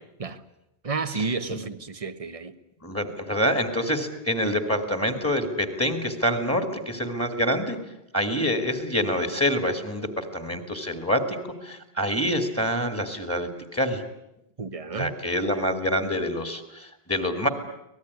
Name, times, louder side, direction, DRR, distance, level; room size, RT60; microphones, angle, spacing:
voice 1, 0.8-2.6 14.6-15.2, right 4 dB, 35° right, 1.2 m, -31 dB
voice 2, 2.8-7.8 8.1-14.0 14.9-17.5, equal, 10° left, 2.6 m, -26 dB
24.5 x 19.0 x 9.7 m
omnidirectional pair, 1.1 m